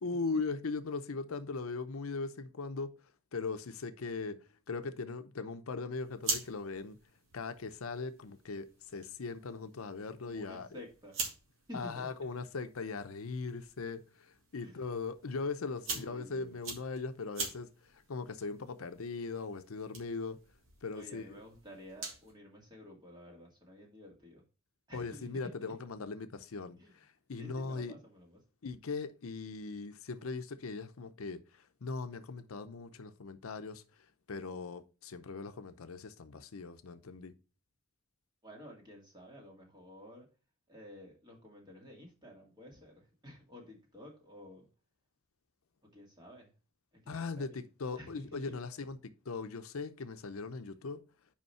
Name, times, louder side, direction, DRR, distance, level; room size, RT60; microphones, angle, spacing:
voice 1, 0.0-2.9 3.3-4.4 4.7-7.0 7.3-10.7 11.7-20.4 20.8-21.4 24.9-27.9 28.6-33.8 34.3-37.3 47.1-49.0 49.3-51.0, left 4 dB, 80° left, 0.7 m, -39 dB
sound 1, 5.9-22.3, right 3 dB, 65° right, 2.2 m, -45 dB
voice 2, 10.2-11.3 11.7-12.1 14.6-14.8 15.9-16.6 20.9-24.4 24.9-25.5 26.8-26.9 27.4-28.4 38.4-40.3 40.7-44.7 45.9-46.5 47.0-47.6 48.0-48.6, left 1 dB, 20° right, 2.2 m, -52 dB
5.5 x 5.0 x 5.6 m
head